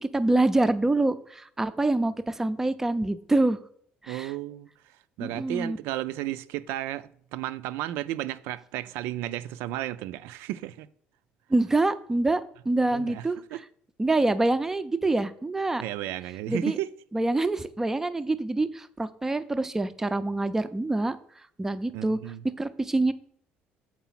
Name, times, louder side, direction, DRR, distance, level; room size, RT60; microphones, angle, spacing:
voice 1, 0.1-3.6 4.0-4.3 5.2-5.8 11.5-13.4 14.0-15.8 16.5-16.8 17.1-21.2 21.6-22.2 22.6-23.1, right 2 dB, 10° right, 0.4 m, -25 dB
voice 2, 4.1-10.9 12.9-13.6 15.8-16.9 21.9-22.4, right 14 dB, 85° right, 0.4 m, -34 dB
7.0 x 4.7 x 5.8 m
cardioid pair, 140°, 4 cm